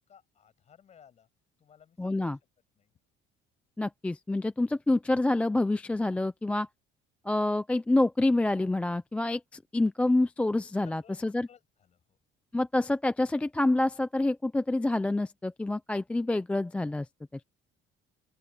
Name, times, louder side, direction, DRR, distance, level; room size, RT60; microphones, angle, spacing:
voice 1, 0.1-1.3 1.6-2.3 2.7-2.9 10.8-11.2 11.5-12.2, left 8 dB, 30° left, 6.0 m, -58 dB
voice 2, 2.0-2.4 3.8-6.7 7.2-11.5 12.5-17.1 17.3-17.4, left 2 dB, 5° left, 0.3 m, -27 dB
open air
cardioid pair, 180°, 21 cm